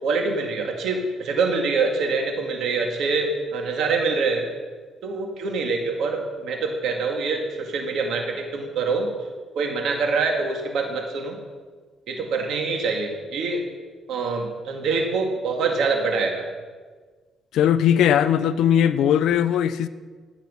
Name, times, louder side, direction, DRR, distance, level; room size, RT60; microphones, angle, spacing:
voice 1, 0.0-4.5 5.0-9.1 9.6-11.4 12.1-13.6 14.1-16.4, right 4 dB, 75° right, 2 dB, 2.0 m, -25 dB
voice 2, 17.5-19.9, left 9 dB, 80° left, 13 dB, 0.5 m, -19 dB
13.5 x 7.3 x 5.5 m, 1.5 s
cardioid pair, 90°, 0 cm